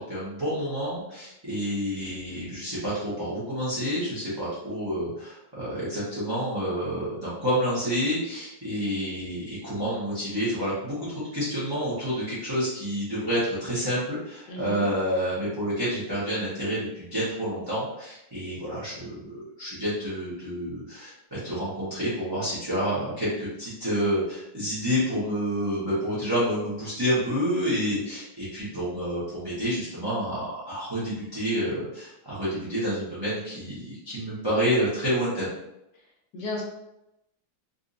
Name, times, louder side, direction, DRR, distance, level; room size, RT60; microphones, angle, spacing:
voice 1, 0.0-11.1 11.3-35.5, equal, 20° right, -11 dB, 0.7 m, -29 dB
voice 2, 14.5-14.9 36.3-36.6, left 2 dB, 65° left, -1 dB, 1.3 m, -33 dB
3.9 x 2.7 x 2.6 m, 0.86 s
omnidirectional pair, 2.1 m